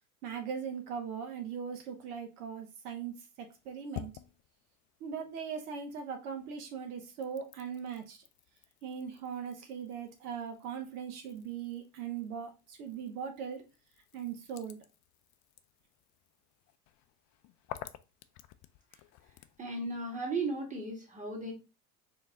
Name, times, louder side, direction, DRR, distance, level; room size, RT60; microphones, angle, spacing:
voice 1, 0.2-4.1 5.0-8.2 8.8-13.6 14.1-14.8, right 7 dB, 75° right, 0.9 m, -40 dB
sound 1, 3.4-6.0 6.4-19.6, left 14 dB, 40° left, 0.4 m, -52 dB
voice 2, 19.6-21.5, right 3 dB, 15° right, 1.8 m, -36 dB
4.5 x 2.9 x 3.6 m
hypercardioid pair, 85°, 45 cm